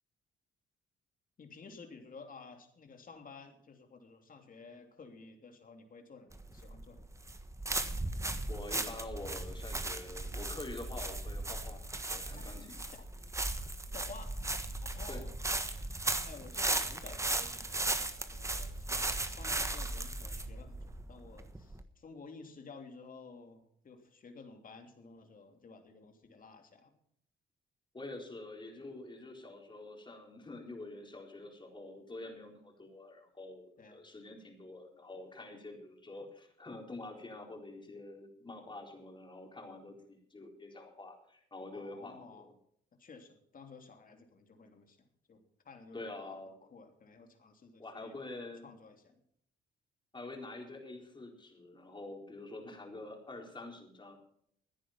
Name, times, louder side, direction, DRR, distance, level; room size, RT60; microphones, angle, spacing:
voice 1, 1.4-7.1 12.3-12.4 12.9-13.0 13.9-14.3 14.8-15.3 16.2-26.9 33.8-34.0 41.7-42.5 43.0-45.0 45.3-48.1 48.6-49.2, left 4 dB, 45° left, 5 dB, 3.1 m, -53 dB
sound 1, 6.3-21.8, right 2 dB, 15° right, 1.3 m, -37 dB
voice 2, 8.5-12.7 15.1-15.2 27.9-42.4 45.9-46.6 47.8-48.7 50.1-54.2, left 2 dB, 25° left, 2 dB, 4.2 m, -47 dB
15.5 x 10.0 x 5.9 m, 0.67 s
cardioid pair, 90°, 20 cm